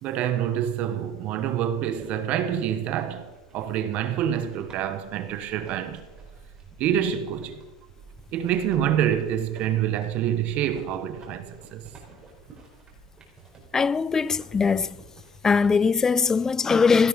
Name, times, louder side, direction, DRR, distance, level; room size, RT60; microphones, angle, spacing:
voice 1, 0.0-6.0 6.8-7.6 8.3-11.9, right 10 dB, 40° right, 1.2 m, -27 dB
sound 1, 1.8-16.5, right 4 dB, 20° right, 4.4 m, -49 dB
voice 2, 13.7-15.0 15.4-17.1, left 5 dB, 15° left, 0.4 m, -21 dB
16.5 x 12.5 x 5.2 m
supercardioid pair, 135°, 4 cm